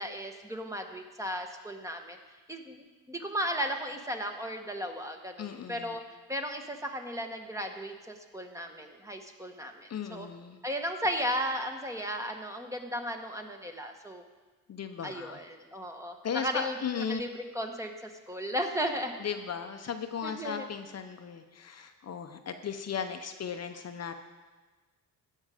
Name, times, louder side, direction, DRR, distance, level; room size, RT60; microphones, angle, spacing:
voice 1, 0.0-2.2 2.5-6.0 6.3-10.3 10.6-14.2 15.0-19.1 20.2-20.6, equal, 10° right, 4 dB, 1.2 m, -35 dB
voice 2, 5.4-6.0 9.9-10.6 14.7-15.4 16.2-17.2 19.2-24.1, left 7 dB, 50° left, 7 dB, 0.8 m, -36 dB
16.0 x 6.5 x 5.0 m, 1.3 s
cardioid pair, 90°, 33 cm